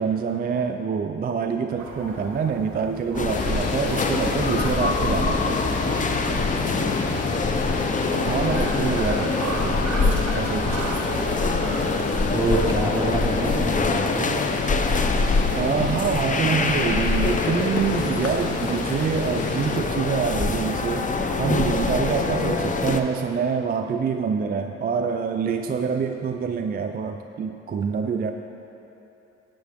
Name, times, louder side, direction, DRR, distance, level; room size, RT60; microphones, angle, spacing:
voice 1, 0.0-5.6 8.2-11.1 15.5-21.1 21.4-28.3, right 6 dB, 30° right, 5 dB, 0.4 m, -26 dB
sound 1, 1.8-13.8, right 3 dB, 60° right, 1.8 m, -37 dB
sound 2, 3.1-23.0, left 3 dB, 25° left, 0.6 m, -24 dB
sound 3, 3.3-19.8, left 4 dB, 55° left, 1.0 m, -33 dB
voice 2, 7.1-8.2 12.3-14.4, right 1 dB, 10° right, -2 dB, 1.2 m, -27 dB
11.5 x 8.2 x 3.5 m, 2.9 s
cardioid pair, 90°, 30 cm